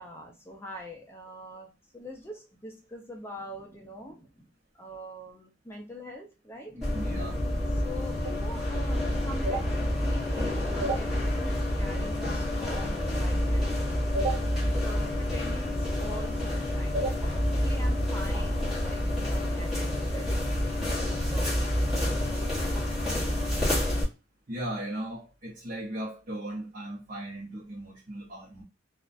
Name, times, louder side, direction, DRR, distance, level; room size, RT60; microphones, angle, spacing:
voice 1, 0.0-4.5 4.8-7.1 7.7-9.7 10.0-11.1 11.3-13.8 14.8-17.0 17.6-19.8 20.1-22.7, equal, 15° left, 0.4 m, -44 dB
sound 1, 6.8-24.0, left 1 dB, 5° right, 1.0 m, -28 dB
voice 2, 6.8-7.4 9.4-9.6 10.8-11.0 14.1-14.5 16.9-17.1 24.5-28.6, right 2 dB, 45° right, 0.5 m, -34 dB
2.4 x 2.1 x 2.5 m
head